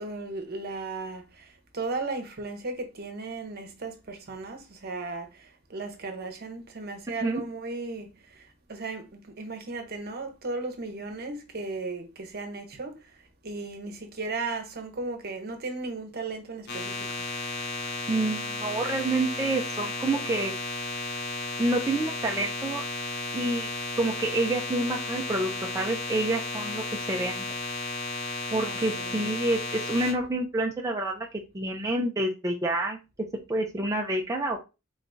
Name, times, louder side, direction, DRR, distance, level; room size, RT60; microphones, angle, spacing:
voice 1, 0.0-12.9 13.4-17.1 28.6-29.2, right 3 dB, 50° right, 0.8 m, -36 dB
sound 1, 16.7-30.1, left 3 dB, 55° left, 1.0 m, -34 dB
voice 2, 18.1-20.6 21.6-22.8 23.3-23.7 24.0-27.5 28.5-31.3 31.5-33.0 33.5-34.6, right 2 dB, 15° right, 0.4 m, -28 dB
3.9 x 3.4 x 2.6 m
head